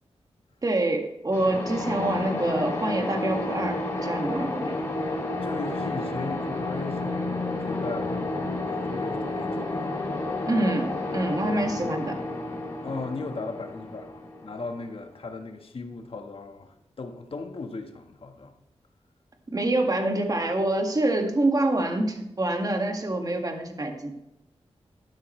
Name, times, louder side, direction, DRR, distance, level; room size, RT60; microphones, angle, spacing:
voice 1, 0.6-4.7 10.5-12.2 19.5-24.1, right 1 dB, 35° right, 4 dB, 2.0 m, -26 dB
sound 1, 1.3-15.0, left 2 dB, 25° left, 3.8 m, -31 dB
voice 2, 5.4-10.0 12.8-18.5, left 3 dB, 55° left, 5 dB, 1.5 m, -37 dB
12.5 x 11.0 x 3.3 m, 0.89 s
wide cardioid pair, 85°, 11 cm